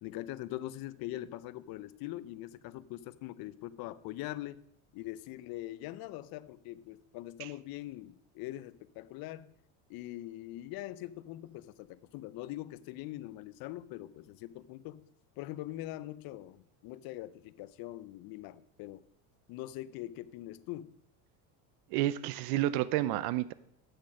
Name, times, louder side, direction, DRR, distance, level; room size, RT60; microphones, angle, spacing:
voice 1, 0.0-4.6 4.9-9.5 9.9-15.1 15.4-19.0 19.5-20.9, left 15 dB, 60° left, 17 dB, 0.6 m, -42 dB
voice 2, 21.9-23.5, right 14 dB, 80° right, 17 dB, 0.6 m, -30 dB
7.9 x 6.3 x 6.3 m, 0.73 s
supercardioid pair, 105°, 40 cm